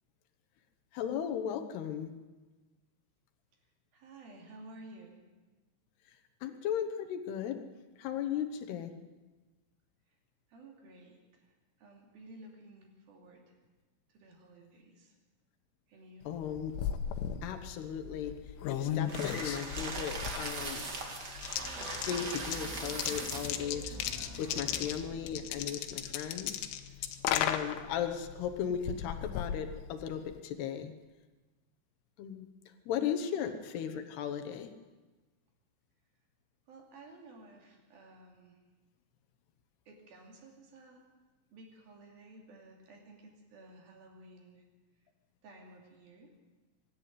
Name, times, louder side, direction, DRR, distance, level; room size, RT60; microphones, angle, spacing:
voice 1, 0.9-2.1 6.4-7.6 8.0-8.9 16.3-16.7 17.4-18.3 18.7-21.0 22.0-24.0 24.4-26.7 27.3-30.9 32.2-32.5 32.9-33.5 33.7-34.7, left 8 dB, 70° left, 6 dB, 2.8 m, -36 dB
voice 2, 3.9-5.2 10.5-13.5 14.1-15.2 15.9-16.4 36.7-38.6 39.9-41.0 41.5-44.6 45.4-46.3, right 2 dB, 55° right, 1 dB, 4.2 m, -54 dB
sound 1, 16.3-30.4, left 10 dB, 90° left, 3.5 m, -37 dB
sound 2, 19.1-23.7, right 3 dB, 80° right, 0.9 m, -40 dB
sound 3, 21.5-25.9, equal, ahead, 6.2 m, -47 dB
24.5 x 11.5 x 9.5 m, 1.2 s
omnidirectional pair, 5.5 m